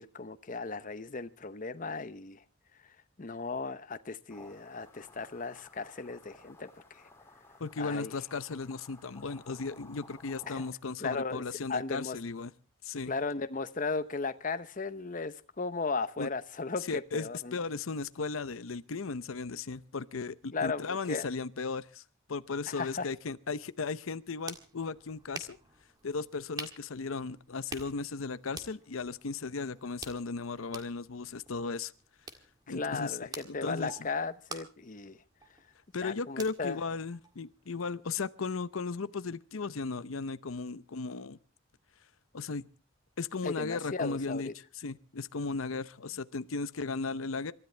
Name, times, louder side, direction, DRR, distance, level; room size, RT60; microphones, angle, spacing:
voice 1, 0.0-2.4 2.8-7.1 7.8-8.1 10.5-10.6 11.0-11.4 11.7-12.2 13.1-17.6 20.5-21.3 22.7-23.1 32.7-35.2 36.0-36.8 43.4-44.5, left 4 dB, 40° left, 0.8 m, -36 dB
sound 1, 4.3-10.7, left 2 dB, 10° left, 2.6 m, -55 dB
voice 2, 7.6-12.5 12.8-13.1 16.2-16.3 16.9-22.0 22.3-25.6 26.0-31.9 32.7-33.2 33.4-33.9 35.9-41.4 42.3-42.6 43.2-44.5 44.7-47.5, left 4 dB, 85° left, 0.7 m, -36 dB
sound 2, 24.0-37.7, right 3 dB, 20° right, 1.8 m, -49 dB
27.5 x 13.5 x 3.3 m
head